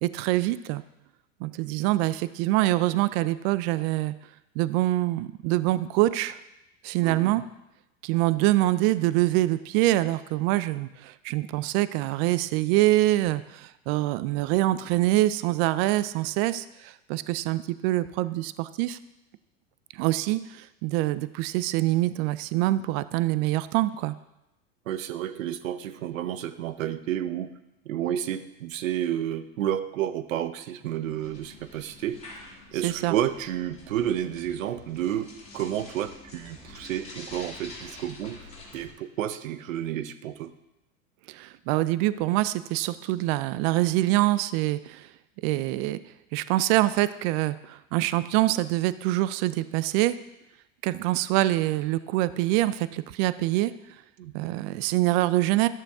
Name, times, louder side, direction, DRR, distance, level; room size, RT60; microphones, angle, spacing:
voice 1, 0.0-0.8 1.4-4.1 4.6-6.4 6.8-7.4 8.0-19.0 19.9-24.1 32.8-33.1 41.3-45.1 45.4-46.0 46.3-50.2 50.8-53.7 54.3-55.7, right 16 dB, 50° right, 16 dB, 0.5 m, -25 dB
voice 2, 7.0-7.4 24.9-27.5 27.9-32.2 32.5-40.5 54.2-54.5, right 11 dB, 85° right, 13 dB, 0.7 m, -31 dB
sound 1, 31.0-38.9, left 2 dB, 15° left, 2.9 m, -47 dB
11.5 x 6.9 x 3.5 m, 0.90 s
hypercardioid pair, 105°, 39 cm